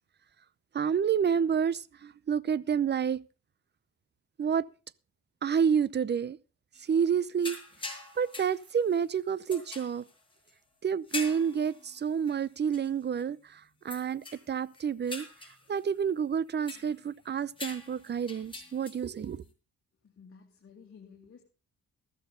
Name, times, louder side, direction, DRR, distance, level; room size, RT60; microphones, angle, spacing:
voice 1, 0.7-3.2 4.4-4.7 5.4-6.4 6.8-7.6 8.2-10.0 10.8-15.3 15.7-19.4, right 7 dB, 35° right, 0.7 m, -29 dB
sound 1, 6.7-7.1 7.4-9.1 9.5-10.5 11.1-12.4 12.7-12.9 13.2-13.3 13.9-14.5 14.7-17.1 17.6-19.2, left 3 dB, 15° left, 6.4 m, -43 dB
voice 2, 20.0-21.5, left 6 dB, 45° left, 2.7 m, -53 dB
14.5 x 13.5 x 3.9 m
cardioid pair, 90°, 30 cm